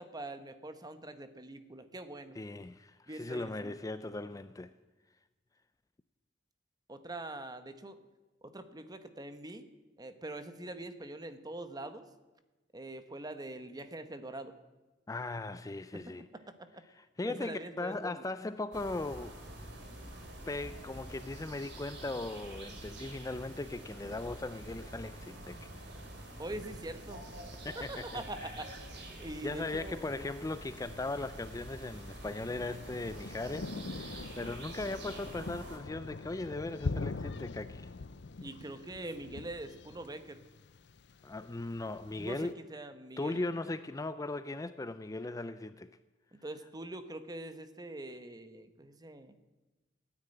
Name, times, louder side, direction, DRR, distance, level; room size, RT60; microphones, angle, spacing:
voice 1, 0.0-2.4 3.1-3.8 6.9-8.0 8.4-9.7 10.0-12.1 12.7-14.6 15.9-16.0 17.3-18.2 26.4-27.3 27.9-28.7 29.2-30.2 38.4-40.4 42.2-43.6 46.3-49.3, right 1 dB, 20° right, 1.1 m, -43 dB
voice 2, 2.4-4.7 15.1-16.3 16.9-19.4 20.5-25.7 27.6-28.6 29.4-37.9 41.2-42.6 43.2-45.9, left 2 dB, 20° left, 0.4 m, -38 dB
sound 1, 18.7-35.8, right 1 dB, 65° right, 3.3 m, -47 dB
Thunder, 30.6-42.5, left 3 dB, 65° left, 0.6 m, -43 dB
16.5 x 9.9 x 8.9 m
head